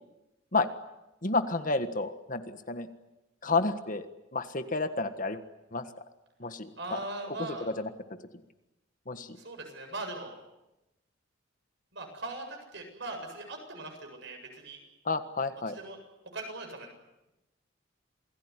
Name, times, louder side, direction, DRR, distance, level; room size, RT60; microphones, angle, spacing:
voice 1, 1.2-2.9 3.4-4.1 4.3-5.4 5.7-5.9 6.4-7.0 7.3-7.9 8.3-8.4 9.1-9.4 15.0-15.8, left 3 dB, 40° left, 9 dB, 1.6 m, -31 dB
voice 2, 6.8-7.7 9.4-10.3 11.9-14.8 15.7-16.0 16.2-16.9, right 2 dB, 60° right, 4 dB, 7.7 m, -40 dB
28.0 x 19.5 x 9.8 m, 0.97 s
head